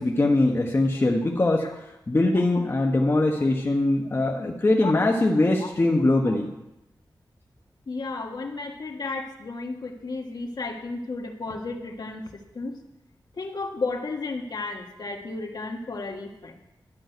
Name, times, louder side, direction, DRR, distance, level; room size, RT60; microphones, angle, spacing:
voice 1, 0.0-1.7 2.1-6.5, left 2 dB, 30° left, 0 dB, 1.3 m, -22 dB
voice 2, 7.9-12.7 13.3-16.5, left 3 dB, 60° left, 2 dB, 1.7 m, -33 dB
12.0 x 6.3 x 9.2 m, 0.90 s
wide cardioid pair, 130°, 8 cm